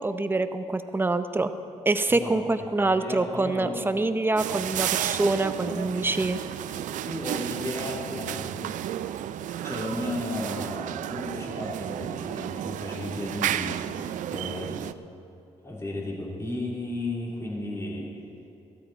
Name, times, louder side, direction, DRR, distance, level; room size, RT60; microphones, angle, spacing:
voice 1, 0.0-1.5 1.9-6.4, right 2 dB, 15° right, 10 dB, 0.7 m, -25 dB
voice 2, 2.1-3.8 7.0-8.8 9.5-14.0 14.3-14.8 15.6-18.1, left 1 dB, 20° left, -4 dB, 3.3 m, -34 dB
sound 1, 4.4-14.9, right 11 dB, 85° right, 0.4 m, -32 dB
14.5 x 13.5 x 4.3 m, 2.7 s
cardioid pair, 95°, 13 cm